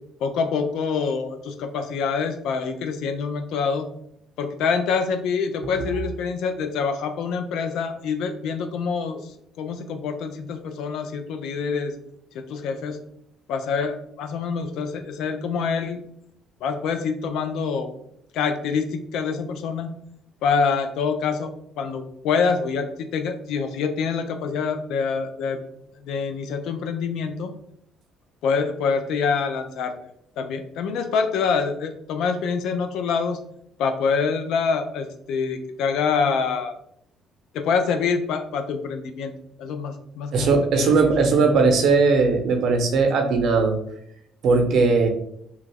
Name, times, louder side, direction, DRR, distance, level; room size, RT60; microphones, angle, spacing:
voice 1, 0.2-3.9 4.4-9.3 9.6-11.9 12.3-13.0 13.5-16.0 16.6-17.9 18.3-19.9 20.4-21.5 21.8-25.6 26.0-27.5 28.4-29.9 30.4-33.4 33.8-36.8 37.5-39.3 39.6-40.5 40.8-41.1, left 5 dB, 75° left, 7 dB, 0.4 m, -26 dB
voice 2, 40.3-43.8 44.4-45.1, right 4 dB, 65° right, 4 dB, 0.7 m, -19 dB
3.0 x 2.3 x 3.4 m, 0.72 s
supercardioid pair, 70°, 0 cm